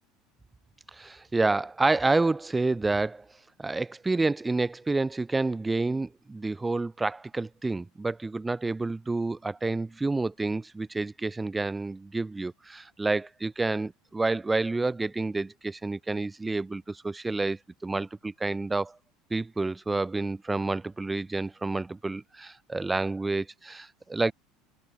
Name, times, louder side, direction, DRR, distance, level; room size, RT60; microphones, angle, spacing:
voice 1, 0.9-3.3 3.6-19.0 19.3-24.3, right 3 dB, 10° right, 0.6 m, -29 dB
supercardioid pair, 135°, 0 cm